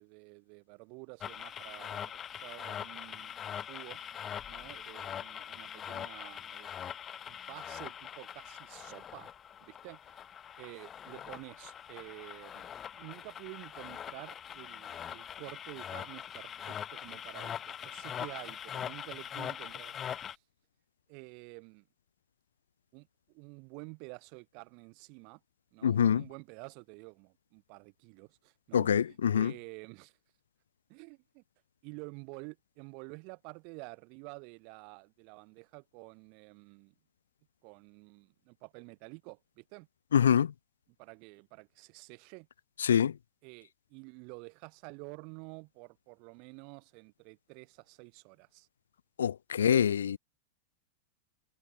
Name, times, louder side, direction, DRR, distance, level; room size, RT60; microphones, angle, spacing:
voice 1, 0.0-4.0 4.5-6.9 7.3-9.3 9.6-10.2 10.6-20.4 21.1-21.8 22.9-25.4 25.7-30.1 30.9-31.4 31.8-36.9 37.6-39.9 41.0-42.5 43.4-48.7, right 36 dB, 45° right, 6.5 m, -50 dB
sound 1, 1.2-20.4, left 9 dB, 25° left, 1.6 m, -42 dB
voice 2, 25.8-26.2 28.7-29.5 40.1-40.5 42.8-43.1 49.2-50.2, left 8 dB, 65° left, 0.5 m, -25 dB
figure-of-eight pair, 90°, 0 cm